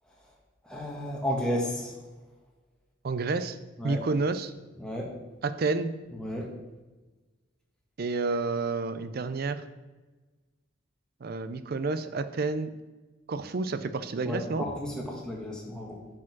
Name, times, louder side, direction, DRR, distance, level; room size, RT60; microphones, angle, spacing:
voice 1, 0.6-1.9 3.8-4.0 4.8-5.1 6.1-6.5 14.2-16.0, left 1 dB, 5° left, -2 dB, 1.4 m, -32 dB
voice 2, 3.0-3.6 3.8-4.5 5.4-5.9 8.0-9.6 11.2-12.7 13.3-14.7, right 3 dB, 55° right, 11 dB, 0.5 m, -29 dB
6.0 x 5.0 x 5.9 m, 1.2 s
head